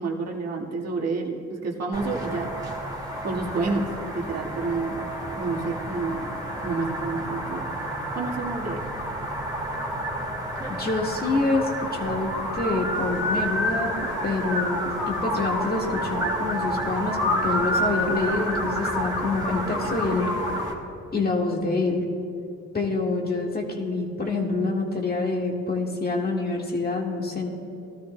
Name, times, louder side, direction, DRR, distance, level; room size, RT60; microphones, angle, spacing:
voice 1, 0.0-2.5 3.2-5.1 5.4-6.3 6.6-7.6 8.1-8.8, right 3 dB, 55° right, -1 dB, 1.7 m, -29 dB
sound 1, 1.9-20.7, equal, 15° right, 2.1 m, -29 dB
voice 2, 10.7-20.4 21.1-22.1 22.7-27.5, left 3 dB, 30° left, 0 dB, 1.8 m, -27 dB
sound 2, 12.9-20.7, right 3 dB, 40° right, 1.5 m, -41 dB
18.5 x 13.0 x 2.3 m, 2.6 s
cardioid pair, 90°, 30 cm